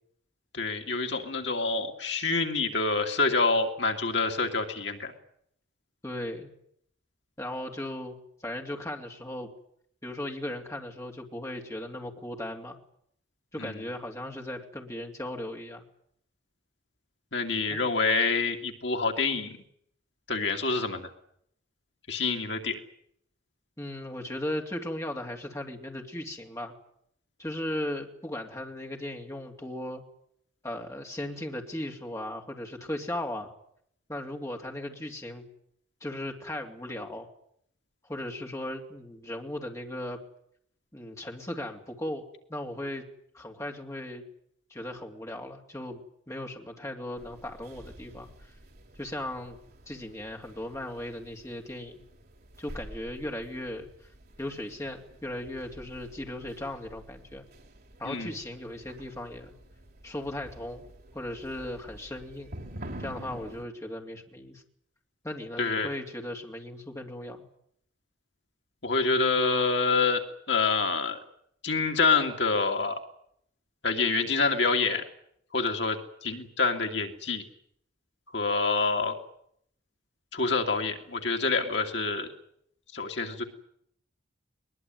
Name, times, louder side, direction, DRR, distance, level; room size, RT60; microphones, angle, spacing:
voice 1, 0.5-5.1 13.6-13.8 17.3-19.6 20.3-21.1 22.1-22.8 58.0-58.3 65.6-65.9 68.8-71.2 71.6-73.0 73.8-75.0 75.5-77.4 78.3-79.2 80.3-82.3 82.9-83.4, left 4 dB, 60° left, 4 dB, 2.5 m, -27 dB
voice 2, 6.0-6.5 7.4-8.2 8.4-9.5 10.0-12.8 13.5-15.8 17.7-17.8 23.8-26.7 27.4-30.0 30.6-33.5 34.1-35.4 36.0-37.3 38.0-40.2 40.9-42.2 42.5-43.0 43.3-44.2 44.7-48.3 49.0-49.6 49.9-52.0 52.6-53.9 54.4-57.4 58.0-59.5 60.0-60.8 61.1-62.5 63.0-64.6 65.2-67.4, left 1 dB, 15° left, 2 dB, 2.9 m, -37 dB
sound 1, 47.2-63.6, right 1 dB, 50° right, 3.5 m, -48 dB
22.0 x 21.0 x 9.4 m, 0.69 s
head